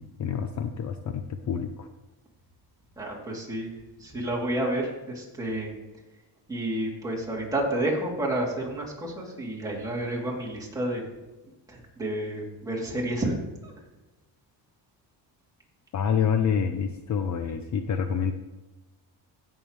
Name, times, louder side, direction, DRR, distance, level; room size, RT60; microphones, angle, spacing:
voice 1, 0.0-1.9 15.9-18.3, left 7 dB, 40° left, 7 dB, 0.6 m, -27 dB
voice 2, 3.0-3.7 4.0-5.7 6.5-11.0 11.7-13.4 13.6-13.7, right 1 dB, 10° right, -5 dB, 3.0 m, -30 dB
16.5 x 7.2 x 3.2 m, 1.1 s
cardioid pair, 135°, 42 cm